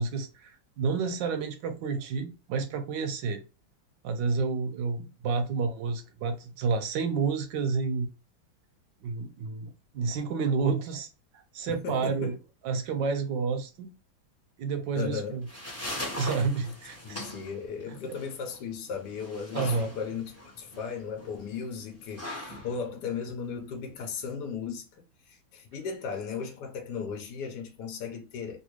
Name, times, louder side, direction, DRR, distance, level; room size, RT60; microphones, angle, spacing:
voice 1, 0.0-3.4 4.0-8.1 9.0-11.1 11.3-12.3 12.6-13.9 14.6-15.4 16.2-17.2 17.9-18.0 19.5-19.9, right 4 dB, 75° right, 1.1 m, -30 dB
voice 2, 11.7-12.4 14.9-15.4 17.0-28.6, left 6 dB, 65° left, 1.2 m, -36 dB
sound 1, 15.2-24.2, left 1 dB, 15° left, 0.6 m, -41 dB
3.3 x 2.6 x 3.0 m
omnidirectional pair, 2.2 m